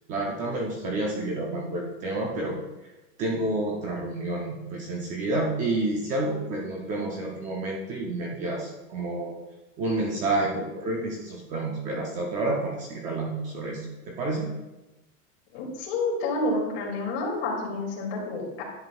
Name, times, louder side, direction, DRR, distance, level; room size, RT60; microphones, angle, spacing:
voice 1, 0.1-2.6 3.2-9.3 9.8-14.5, right 2 dB, 20° right, 0 dB, 0.5 m, -29 dB
voice 2, 15.5-18.6, left 2 dB, 50° left, -2 dB, 2.4 m, -29 dB
10.5 x 7.8 x 2.3 m, 1.0 s
supercardioid pair, 170°, 39 cm